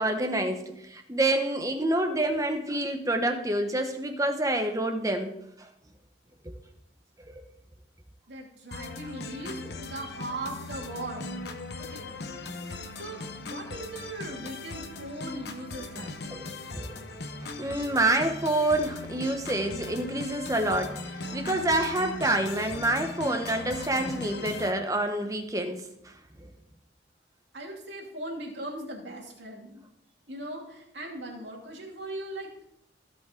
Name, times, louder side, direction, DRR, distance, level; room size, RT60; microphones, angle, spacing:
voice 1, 0.0-5.3 5.6-5.7 6.4-6.5 7.3-7.4 16.3-17.0 17.4-26.1 26.4-26.5, right 1 dB, 15° right, 5 dB, 0.9 m, -28 dB
voice 2, 8.3-11.3 11.8-12.1 13.0-16.2 21.3-21.5 27.5-29.8 30.3-32.6, right 1 dB, 65° right, -2 dB, 2.6 m, -39 dB
sound 1, 8.7-24.7, left 3 dB, 55° left, 0.9 m, -39 dB
16.5 x 5.5 x 3.8 m, 0.79 s
head